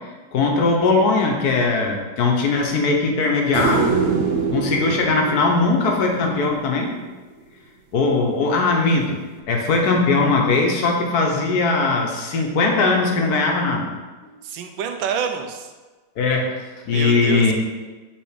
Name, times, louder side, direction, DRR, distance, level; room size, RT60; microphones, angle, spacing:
voice 1, 0.3-3.9 4.5-6.9 7.9-9.2 9.5-13.9 16.2-16.6 16.9-17.5, left 3 dB, 60° left, 1 dB, 1.2 m, -19 dB
sound 1, 3.5-6.8 9.4-9.5, right 5 dB, 60° right, 0.7 m, -24 dB
voice 2, 14.4-15.7 16.9-17.5, right 7 dB, 85° right, 6 dB, 1.4 m, -27 dB
5.9 x 3.9 x 5.0 m, 1.3 s
omnidirectional pair, 2.1 m